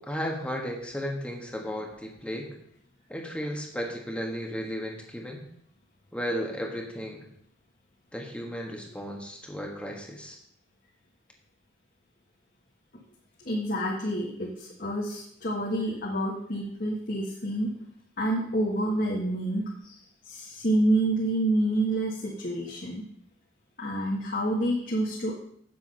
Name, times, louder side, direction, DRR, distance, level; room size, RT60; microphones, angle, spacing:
voice 1, 0.0-2.5 3.1-5.4 6.1-7.2 8.1-10.4, equal, 5° left, 0 dB, 1.4 m, -34 dB
voice 2, 13.4-17.7 18.2-20.0 20.2-23.0 23.8-25.4, right 1 dB, 50° left, -3 dB, 1.6 m, -28 dB
8.3 x 7.7 x 5.5 m, 0.68 s
head